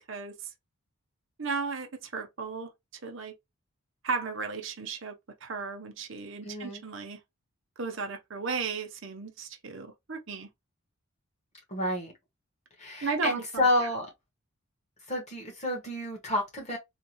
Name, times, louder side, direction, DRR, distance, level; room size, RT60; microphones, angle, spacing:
voice 1, 1.4-2.7 3.0-3.3 4.0-5.2 5.4-7.2 7.8-10.5 13.0-13.7, right 4 dB, 55° right, 0.7 m, -35 dB
voice 2, 6.4-6.8 11.7-12.1 12.8-14.1 15.1-16.8, left 1 dB, 30° left, 1.4 m, -29 dB
3.6 x 2.3 x 2.9 m
head